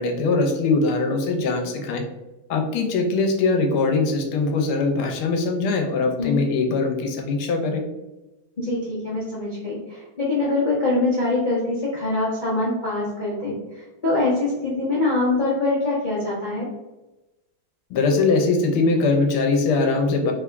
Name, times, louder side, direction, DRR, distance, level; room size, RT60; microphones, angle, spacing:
voice 1, 0.0-2.0 2.5-7.8 17.9-20.3, left 3 dB, 85° left, 3 dB, 1.6 m, -21 dB
voice 2, 8.6-16.7, left 2 dB, 30° left, -9 dB, 1.0 m, -24 dB
3.6 x 3.4 x 3.4 m, 1.0 s
omnidirectional pair, 2.3 m